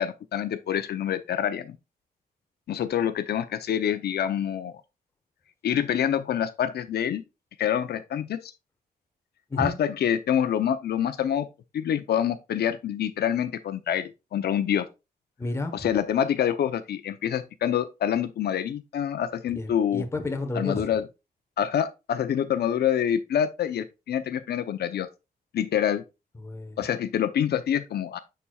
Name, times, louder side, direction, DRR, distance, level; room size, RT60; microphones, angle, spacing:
voice 1, 0.0-1.8 2.7-4.8 5.6-7.2 7.6-8.5 9.6-11.5 11.7-14.9 15.7-20.0 20.5-21.1 21.6-25.1 25.5-26.0 26.8-28.2, left 9 dB, 80° left, 0.7 m, -26 dB
voice 2, 15.4-15.9 19.6-20.9 26.3-26.8, left 2 dB, 15° left, 1.1 m, -31 dB
7.0 x 6.1 x 2.3 m
wide cardioid pair, 175°, 17 cm